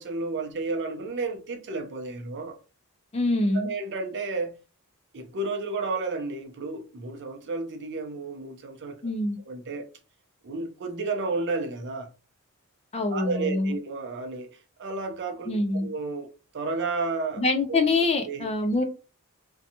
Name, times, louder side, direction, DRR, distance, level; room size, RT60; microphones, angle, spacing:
voice 1, 0.0-2.6 3.5-4.6 5.1-8.9 9.4-9.9 10.4-12.1 13.1-16.3 16.5-17.4 17.7-17.8 18.3-18.5, right 3 dB, 55° right, 0.5 m, -32 dB
voice 2, 3.1-3.7 9.0-9.4 12.9-13.8 15.5-15.9 17.4-18.8, left 2 dB, 30° left, 0.4 m, -25 dB
2.6 x 2.2 x 2.7 m
head